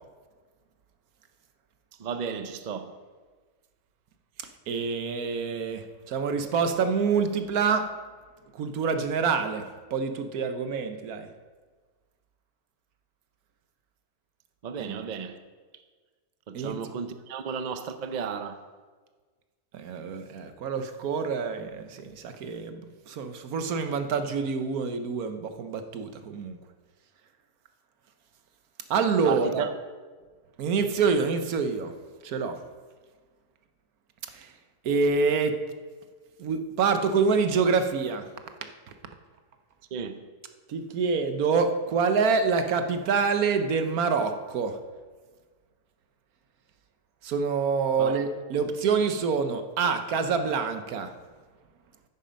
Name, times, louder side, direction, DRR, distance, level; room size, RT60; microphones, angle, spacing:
voice 1, 2.0-2.9 14.6-15.4 16.5-18.6 29.2-29.7 39.9-40.3 48.0-48.2, right 6 dB, 85° right, 0.4 m, -33 dB
voice 2, 4.7-7.8 8.5-11.3 14.8-15.0 16.5-16.8 19.7-26.6 28.9-29.7 30.6-31.9 32.2-32.6 34.3-34.5 34.8-35.6 36.4-38.2 40.7-44.8 47.2-51.1, right 5 dB, 65° right, 1.2 m, -26 dB
9.4 x 8.5 x 5.2 m
omnidirectional pair, 1.7 m